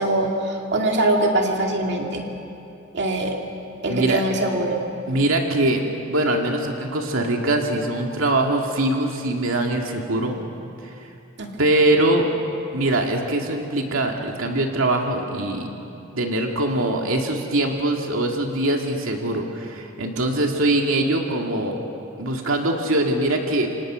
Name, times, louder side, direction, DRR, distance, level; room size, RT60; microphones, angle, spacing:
voice 1, 0.0-2.3 2.9-3.4 3.8-4.8 11.4-11.5, right 1 dB, 60° right, 1 dB, 2.5 m, -22 dB
voice 2, 3.9-4.2 5.1-10.5 11.6-12.3 12.7-15.7 16.1-21.8 22.2-23.7, right 1 dB, 90° right, 1 dB, 2.3 m, -22 dB
28.5 x 26.5 x 6.3 m, 2.8 s
head